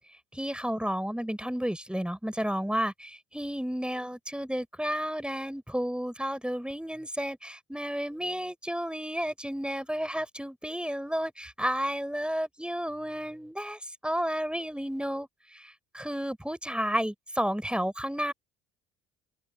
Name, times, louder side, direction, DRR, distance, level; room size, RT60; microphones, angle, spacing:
voice 1, 0.3-15.3 15.5-18.3, equal, ahead, 5.3 m, -32 dB
figure-of-eight pair, 55°, 39 cm